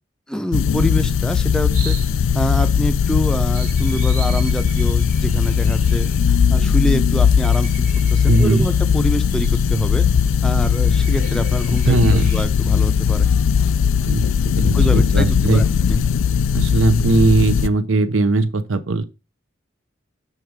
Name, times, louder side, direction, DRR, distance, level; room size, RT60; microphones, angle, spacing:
voice 1, 0.3-2.0 2.3-10.1 10.4-13.3 14.7-15.6 15.9-16.0, equal, 5° left, 0.6 m, -25 dB
sound 1, 0.5-17.7, left 7 dB, 70° left, 0.4 m, -18 dB
sound 2, 1.7-12.4, right 4 dB, 40° right, 1.6 m, -39 dB
voice 2, 8.3-8.7 11.8-12.3 14.0-15.6 16.5-19.0, right 3 dB, 75° right, 0.7 m, -19 dB
6.6 x 3.7 x 4.7 m
head